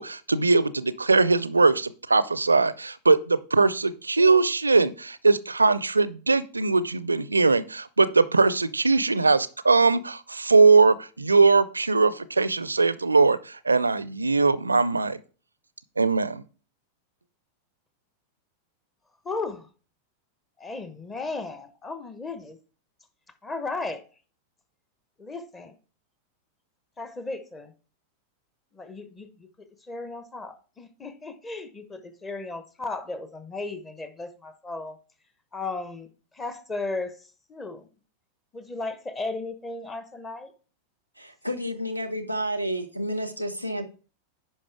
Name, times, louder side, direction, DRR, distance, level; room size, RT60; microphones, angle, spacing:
voice 1, 0.0-15.2 16.0-16.4, right 4 dB, 80° right, 18 dB, 0.4 m, -21 dB
voice 2, 19.2-19.7 20.6-22.6 23.4-24.0 25.2-25.7 27.0-27.7 28.7-29.5 29.9-35.0 35.5-36.1 36.3-37.1 37.5-37.9 38.5-40.5, left 3 dB, 15° left, 10 dB, 1.1 m, -35 dB
voice 3, 41.2-43.9, equal, 90° left, 10 dB, 1.0 m, -30 dB
10.0 x 5.2 x 3.4 m, 0.37 s
figure-of-eight pair, 90°, 0 cm